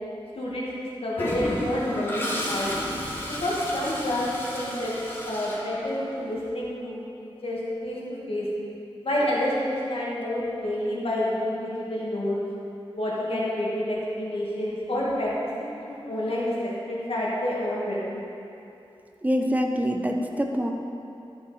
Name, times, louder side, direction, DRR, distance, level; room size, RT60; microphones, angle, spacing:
voice 1, 0.4-2.7 3.3-4.3 4.5-4.9 5.2-8.5 9.0-12.4 13.0-15.3 15.6-18.2, left 1 dB, 80° left, -6 dB, 1.9 m, -29 dB
Toilet flush, 1.2-6.2, left 1 dB, 25° left, 1.5 m, -32 dB
voice 2, 19.2-20.7, equal, 15° right, 3 dB, 0.8 m, -25 dB
13.0 x 5.0 x 5.0 m, 2.8 s
wide cardioid pair, 75°, 10 cm